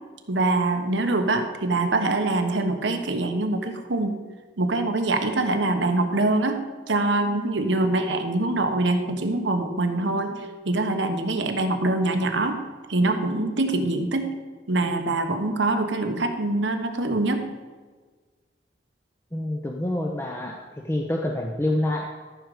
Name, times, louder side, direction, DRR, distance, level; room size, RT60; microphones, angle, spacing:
voice 1, 0.3-4.2 4.6-6.6 6.9-10.4 10.6-12.6 12.9-14.3 14.7-17.5, right 2 dB, 85° right, 6 dB, 1.1 m, -24 dB
voice 2, 19.3-22.1, left 1 dB, 15° left, 1 dB, 0.6 m, -27 dB
13.5 x 6.5 x 4.9 m, 1.4 s
head